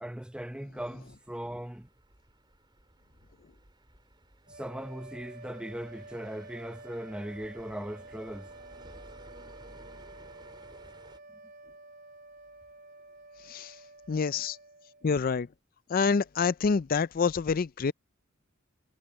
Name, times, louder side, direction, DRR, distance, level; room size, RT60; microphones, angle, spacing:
voice 1, 0.0-1.9 4.5-8.5, right 1 dB, 5° right, 0.7 m, -39 dB
sound 1, 0.8-11.2, right 1 dB, 20° right, 4.4 m, -56 dB
sound 2, 4.5-15.4, right 2 dB, 45° right, 5.2 m, -50 dB
voice 2, 14.1-14.6 15.0-15.5 15.9-17.9, left 5 dB, 45° left, 0.4 m, -27 dB
head